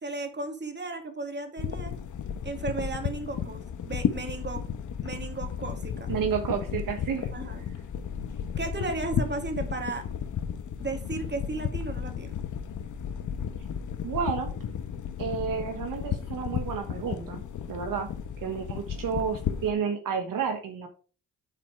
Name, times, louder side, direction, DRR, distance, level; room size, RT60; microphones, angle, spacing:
voice 1, 0.0-2.0 2.4-4.7 5.0-6.1 7.3-7.6 8.6-10.1 10.8-12.4, right 3 dB, 30° right, 5 dB, 2.2 m, -35 dB
sound 1, 1.6-19.7, left 8 dB, 65° left, 1.0 m, -33 dB
voice 2, 6.1-7.3 14.0-14.5 15.2-17.4 17.7-18.1 18.4-20.9, right 6 dB, 75° right, 5 dB, 1.3 m, -30 dB
9.7 x 4.3 x 4.7 m, 0.37 s
cardioid pair, 65°, 33 cm